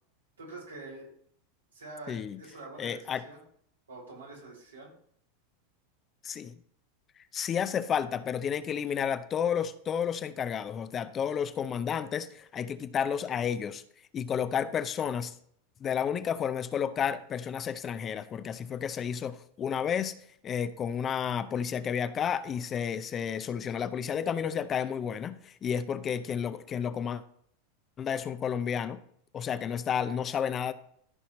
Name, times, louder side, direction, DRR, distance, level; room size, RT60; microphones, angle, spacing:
voice 1, 0.4-1.1 1.7-3.4 3.9-4.9, right 3 dB, 85° right, -3 dB, 4.0 m, -46 dB
voice 2, 2.1-2.4 2.8-3.2 6.2-6.5 7.3-13.8 14.1-15.3 15.8-20.1 20.4-27.2 28.0-29.0 29.3-30.7, left 8 dB, 30° left, 12 dB, 0.6 m, -31 dB
14.5 x 5.7 x 3.1 m, 0.66 s
hypercardioid pair, 90°, 0 cm